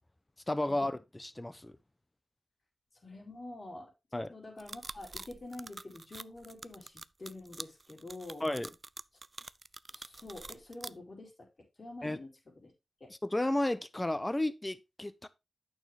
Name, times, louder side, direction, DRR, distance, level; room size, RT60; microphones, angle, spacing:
voice 1, 0.5-1.7 4.1-4.3 8.4-8.7 12.0-12.2 13.2-15.3, left 1 dB, 20° left, 0.8 m, -33 dB
voice 2, 3.0-8.5 9.9-11.5 11.8-12.3 12.6-12.7 13.0-13.1, left 2 dB, 45° left, 4.2 m, -47 dB
sound 1, 4.6-10.9, right 3 dB, 40° right, 0.3 m, -45 dB
9.0 x 6.4 x 3.3 m
cardioid pair, 60°, 0 cm